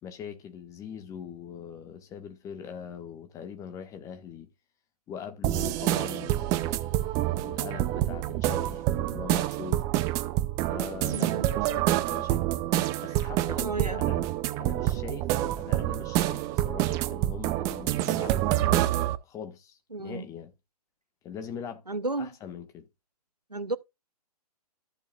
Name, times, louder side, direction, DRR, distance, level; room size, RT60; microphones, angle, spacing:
voice 1, 0.0-4.5 5.1-9.8 10.7-12.4 13.0-14.3 14.6-15.3 15.5-18.9 19.2-20.5 21.2-21.8 22.2-22.9, left 7 dB, 15° left, 1.5 m, -42 dB
sound 1, 5.4-19.2, right 15 dB, 15° right, 0.5 m, -27 dB
voice 2, 11.1-11.5 13.6-14.1 15.3-15.5 19.9-20.2 21.9-22.3 23.5-23.8, right 2 dB, 90° right, 0.8 m, -33 dB
13.5 x 7.1 x 2.4 m
figure-of-eight pair, 125°, 20 cm